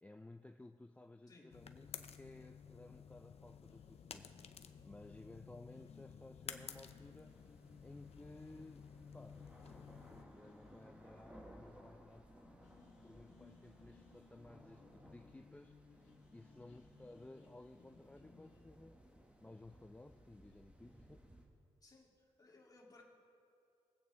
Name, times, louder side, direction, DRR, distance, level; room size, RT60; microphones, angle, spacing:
voice 1, 0.0-4.3 4.8-7.4 7.8-12.3 13.0-19.0 19.4-21.3, left 2 dB, 10° left, 6 dB, 0.4 m, -57 dB
voice 2, 1.3-1.6 21.8-23.0, left 2 dB, 30° left, -2 dB, 2.5 m, -62 dB
sound 1, 1.5-10.2, left 7 dB, 60° left, 0.6 m, -54 dB
sound 2, 3.7-18.7, left 4 dB, 80° left, 2.1 m, -64 dB
sound 3, 7.3-21.5, equal, 10° right, 1.6 m, -62 dB
21.5 x 8.5 x 3.4 m, 2.5 s
cardioid pair, 90°, 12 cm